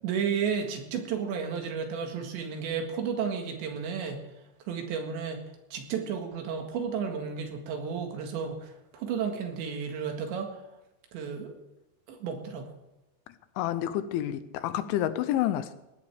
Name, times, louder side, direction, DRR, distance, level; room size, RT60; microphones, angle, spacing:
voice 1, 0.0-4.2 4.7-5.4 5.7-10.6 11.1-11.6 12.1-12.7, right 6 dB, 70° right, 3.9 m, -32 dB
voice 2, 13.6-15.7, left 12 dB, 85° left, 3.2 m, -29 dB
20.0 x 16.5 x 3.5 m
omnidirectional pair, 5.5 m